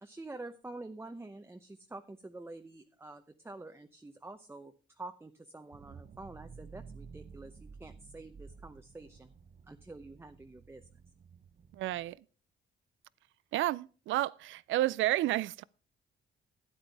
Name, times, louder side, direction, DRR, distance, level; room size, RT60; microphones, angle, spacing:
voice 1, 0.0-9.3 9.7-10.9, right 2 dB, 10° right, 0.7 m, -48 dB
sound 1, 5.7-12.2, right 5 dB, 45° right, 0.7 m, -53 dB
voice 2, 11.7-12.2 13.5-15.6, right 15 dB, 75° right, 0.4 m, -31 dB
13.0 x 8.9 x 3.4 m
cardioid pair, 90°, 20 cm